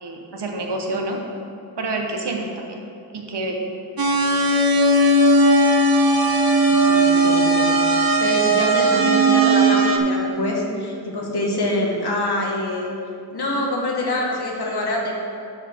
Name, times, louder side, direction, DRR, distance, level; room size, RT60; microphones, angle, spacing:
voice 1, 0.0-1.2 1.8-2.8 3.1-3.6, right 2 dB, 90° right, 2 dB, 1.1 m, -27 dB
sound 1, 4.0-10.0, right 2 dB, 60° right, 0.8 m, -17 dB
voice 2, 6.7-12.9 13.3-15.1, left 1 dB, 70° left, -2 dB, 1.5 m, -25 dB
11.5 x 4.1 x 4.5 m, 2.6 s
wide cardioid pair, 80°, 40 cm